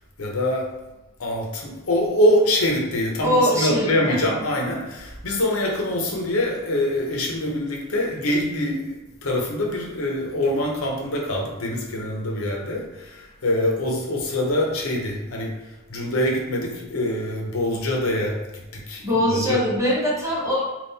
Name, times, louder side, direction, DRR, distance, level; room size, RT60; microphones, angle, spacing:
voice 1, 0.2-0.7 1.2-9.0 9.2-15.5 15.9-19.6, left 1 dB, 85° left, 0 dB, 0.9 m, -24 dB
voice 2, 3.2-4.2 19.0-20.6, equal, 15° right, -6 dB, 1.1 m, -22 dB
3.7 x 2.5 x 4.1 m, 1.1 s
head